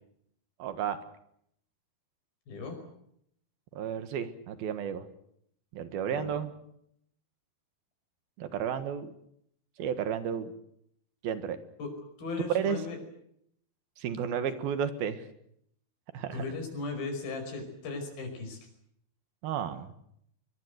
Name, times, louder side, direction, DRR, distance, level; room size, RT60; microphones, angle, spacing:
voice 1, 0.6-1.0 3.7-5.0 5.7-6.5 8.4-9.1 9.8-10.5 11.2-11.6 12.5-12.8 14.0-15.2 16.1-16.4 19.4-19.9, right 8 dB, 75° right, 11 dB, 3.4 m, -32 dB
voice 2, 2.5-2.8 6.1-6.4 11.8-11.9 12.2-13.0 16.3-18.6, left 3 dB, 65° left, 4 dB, 7.1 m, -37 dB
22.5 x 22.5 x 8.0 m, 0.72 s
omnidirectional pair, 4.5 m